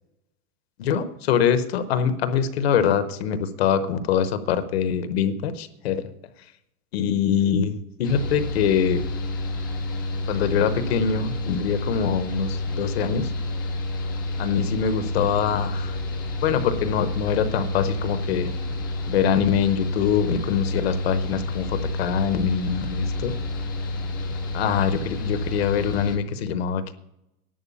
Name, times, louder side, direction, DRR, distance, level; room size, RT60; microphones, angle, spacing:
voice 1, 0.8-6.0 6.9-9.0 10.3-13.3 14.4-16.0 16.4-18.5 19.1-23.3 24.5-26.9, left 7 dB, 40° left, 11 dB, 0.8 m, -24 dB
Mechanical fan, 8.0-26.2, left 2 dB, 15° left, 0.4 m, -29 dB
11.0 x 7.7 x 8.5 m, 0.86 s
supercardioid pair, 180°, 47 cm